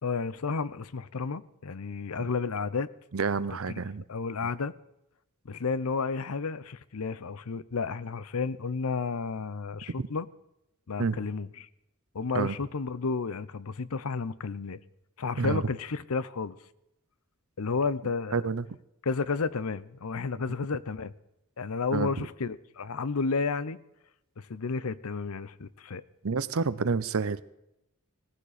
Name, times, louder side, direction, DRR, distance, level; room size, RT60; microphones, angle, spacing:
voice 1, 0.0-2.9 3.4-3.8 4.1-4.7 5.4-10.3 10.9-11.7 12.1-14.8 15.2-16.6 17.6-18.5 19.0-21.1 21.6-23.8 24.4-26.0, left 4 dB, 85° left, 17 dB, 0.7 m, -32 dB
voice 2, 3.1-4.0 11.0-11.2 12.3-12.5 15.4-15.6 18.3-18.6 21.9-22.3 26.2-27.4, right 4 dB, 70° right, 16 dB, 0.7 m, -28 dB
18.0 x 15.0 x 4.2 m, 0.86 s
head